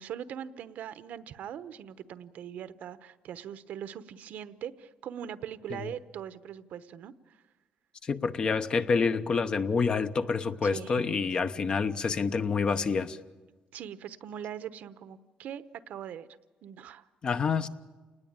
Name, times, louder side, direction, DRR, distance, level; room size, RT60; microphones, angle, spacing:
voice 1, 0.0-7.4 10.6-11.0 13.7-16.3 16.6-17.1, right 9 dB, 65° right, 14 dB, 1.0 m, -41 dB
voice 2, 8.0-13.2 17.2-17.7, left 5 dB, 35° left, 11 dB, 0.9 m, -27 dB
28.5 x 19.5 x 9.0 m, 1.3 s
cardioid pair, 160°, 3 cm